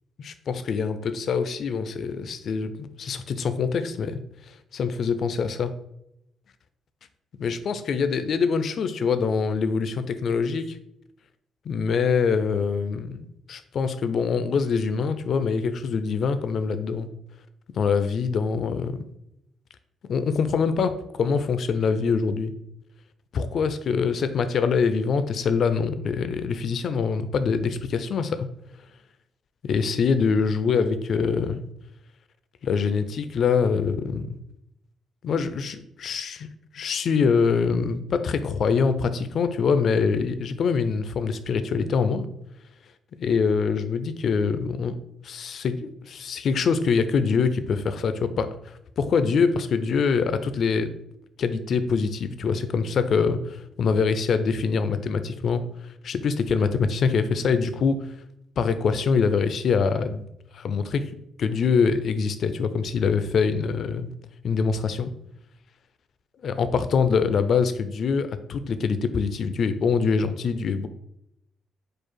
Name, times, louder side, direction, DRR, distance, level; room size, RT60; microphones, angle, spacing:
voice 1, 0.2-4.2 4.5-5.7 7.4-10.8 11.7-13.2 13.5-17.1 17.7-19.0 20.1-22.5 23.3-28.5 29.6-31.6 32.6-34.4 35.2-36.5 36.7-42.3 43.2-45.0 45.2-50.9 51.4-55.6 56.0-58.0 58.6-60.2 60.5-61.0 61.4-64.1 64.4-65.1 66.4-70.9, left 5 dB, 60° left, 11 dB, 0.4 m, -24 dB
4.6 x 2.4 x 4.5 m, 0.80 s
cardioid pair, 90°, 0 cm